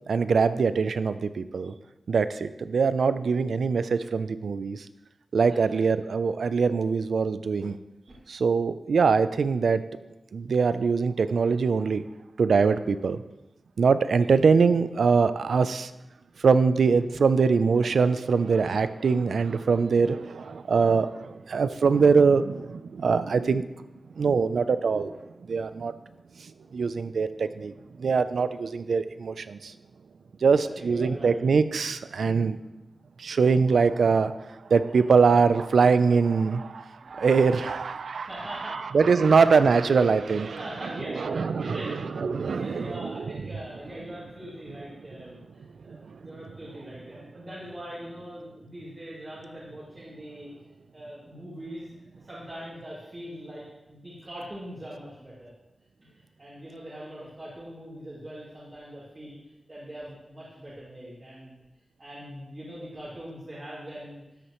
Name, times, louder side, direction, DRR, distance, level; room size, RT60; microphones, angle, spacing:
voice 1, 0.1-1.7 2.1-4.9 5.3-7.8 8.3-9.8 10.3-12.0 12.4-13.2 13.8-15.9 16.4-23.8 24.2-25.9 26.4-29.7 30.4-32.6 33.2-38.3 38.7-40.6 41.1-43.2 45.9-46.2, right 5 dB, 85° right, 13 dB, 0.4 m, -23 dB
voice 2, 5.4-5.8 14.2-14.3 30.4-31.3 37.0-37.2 38.2-38.8 39.1-39.4 40.5-41.9 42.5-50.5 50.9-51.9 52.1-55.5 56.0-59.4 59.7-61.6 62.0-64.2, equal, 35° right, -9 dB, 2.5 m, -42 dB
13.0 x 8.3 x 3.1 m, 0.97 s
wide cardioid pair, 130°, 0 cm